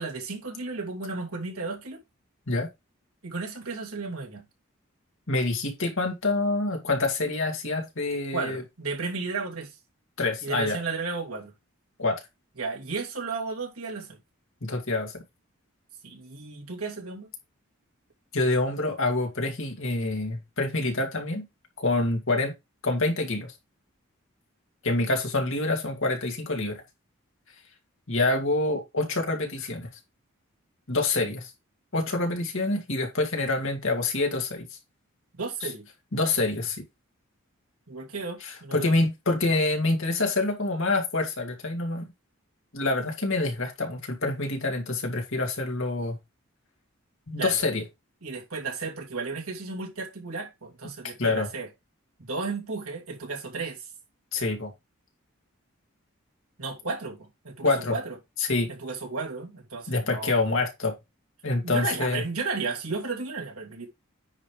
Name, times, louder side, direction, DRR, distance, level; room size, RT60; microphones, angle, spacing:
voice 1, 0.0-2.0 3.2-4.4 8.3-9.8 10.4-11.5 12.6-14.2 16.0-17.3 35.4-35.9 37.9-38.9 47.4-47.6 48.2-51.7 52.2-53.9 56.6-58.2 58.7-60.5 61.6-63.9, right 4 dB, 90° right, 2.7 m, -34 dB
voice 2, 5.3-8.6 10.2-10.8 12.0-12.2 14.6-15.2 18.3-21.5 21.8-22.5 22.8-23.5 24.8-26.8 28.1-29.9 30.9-31.5 31.9-34.6 36.1-36.8 38.4-42.1 42.7-46.2 47.3-47.8 51.2-51.5 54.3-54.7 57.6-58.0 58.4-58.7 59.9-60.9 61.4-62.2, left 2 dB, 65° left, 2.3 m, -26 dB
9.8 x 3.3 x 5.0 m
head